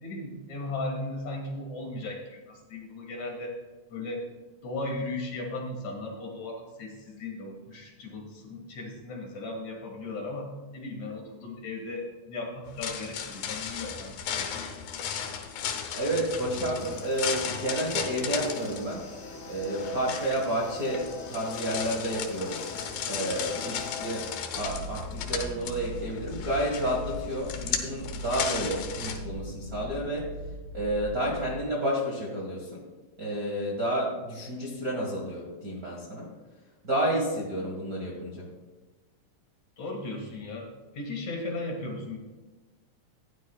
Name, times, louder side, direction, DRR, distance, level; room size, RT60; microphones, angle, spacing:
voice 1, 0.0-3.6 3.9-4.2 4.6-14.6 39.8-40.7 40.9-42.2, left 2 dB, 60° left, 0 dB, 2.8 m, -36 dB
sound 1, 12.7-29.2, left 8 dB, 85° left, 2.8 m, -36 dB
voice 2, 15.9-19.0 19.5-22.6 23.1-24.2 24.6-30.3 30.7-32.8 33.2-36.3 36.8-38.4, right 1 dB, 40° right, -4 dB, 1.3 m, -30 dB
sound 2, 16.8-24.4, left 4 dB, 40° left, 2.0 m, -42 dB
sound 3, 24.5-31.6, equal, 75° right, 2.8 m, -40 dB
15.0 x 10.0 x 2.3 m, 1.2 s
omnidirectional pair, 3.9 m